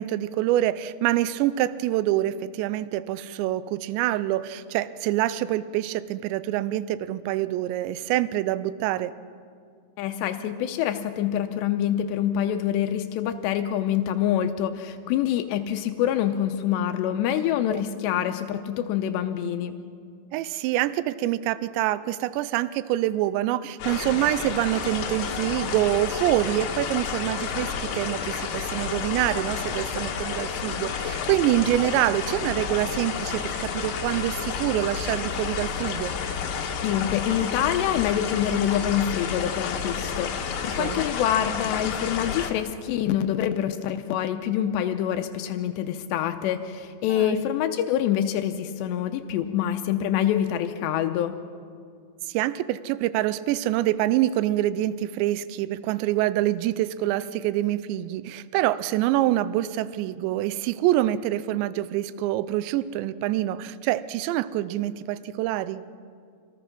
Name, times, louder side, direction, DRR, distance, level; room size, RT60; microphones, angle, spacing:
voice 1, 0.0-9.1 17.7-17.8 20.3-36.1 40.7-41.0 47.2-47.5 52.3-65.8, right 14 dB, 85° right, 15 dB, 2.6 m, -26 dB
voice 2, 10.0-19.8 36.8-51.3, left 10 dB, 85° left, 7 dB, 2.5 m, -26 dB
sound 1, 23.8-42.5, left 6 dB, 60° left, 2.5 m, -30 dB
26.0 x 19.0 x 6.0 m, 2.2 s
omnidirectional pair, 5.7 m